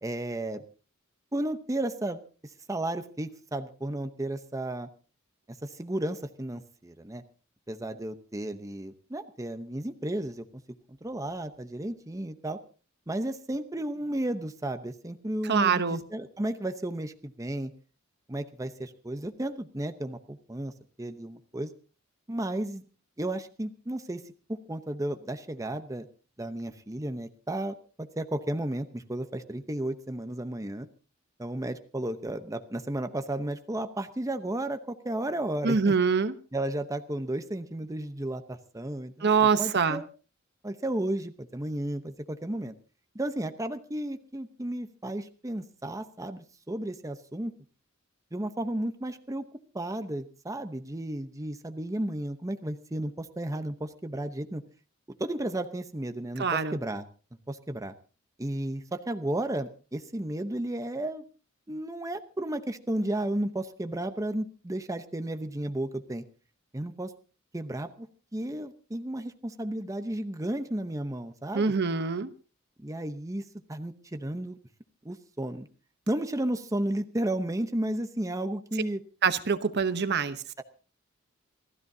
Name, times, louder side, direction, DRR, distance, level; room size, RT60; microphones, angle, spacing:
voice 1, 0.0-0.6 1.3-4.9 5.6-7.2 7.7-10.4 11.0-12.6 13.1-17.7 18.3-20.7 21.0-21.7 22.3-22.8 23.2-24.2 24.5-26.1 26.4-30.9 31.4-35.9 36.5-40.1 40.6-42.7 43.1-47.5 48.3-49.4 49.7-54.6 55.2-57.0 57.5-57.9 58.4-61.2 61.7-66.2 66.7-67.1 67.5-68.1 68.3-71.7 72.8-73.4 73.7-74.6 75.0-75.7 76.1-79.0 80.6-80.7, right 1 dB, 15° right, 0.8 m, -33 dB
voice 2, 15.4-16.0 35.6-36.3 39.2-40.0 56.4-56.8 71.5-72.3 79.2-80.4, right 5 dB, 55° right, 0.9 m, -25 dB
27.5 x 13.5 x 2.7 m
head